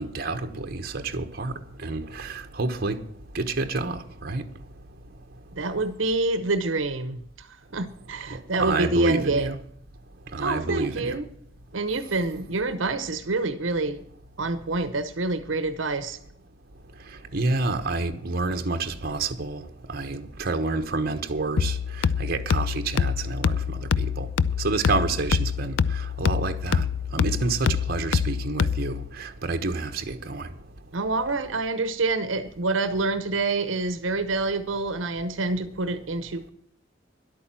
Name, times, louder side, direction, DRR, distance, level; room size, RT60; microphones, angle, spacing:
voice 1, 0.0-5.6 8.3-9.5 10.2-11.2 16.8-31.0, right 3 dB, 50° right, 1.1 m, -29 dB
voice 2, 5.5-7.5 7.7-9.6 10.4-11.3 11.7-14.0 14.4-16.2 30.9-36.5, right 3 dB, 80° right, 0.9 m, -27 dB
sound 1, 21.6-29.1, left 6 dB, 70° left, 0.4 m, -26 dB
11.0 x 8.7 x 7.5 m
head